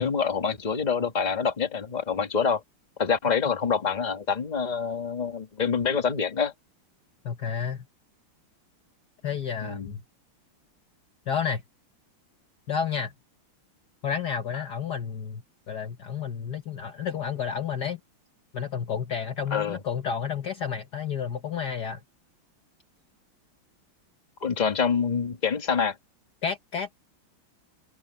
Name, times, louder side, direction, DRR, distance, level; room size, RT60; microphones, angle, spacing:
voice 1, 0.0-2.6 3.0-6.5 9.6-9.9 19.5-19.8 24.4-25.9, left 6 dB, 20° left, 1.6 m, -26 dB
voice 2, 7.2-7.9 9.2-10.0 11.3-11.6 12.7-13.1 14.0-18.0 18.5-22.0 26.4-27.1, left 7 dB, 55° left, 1.5 m, -31 dB
omnidirectional pair, 2.4 m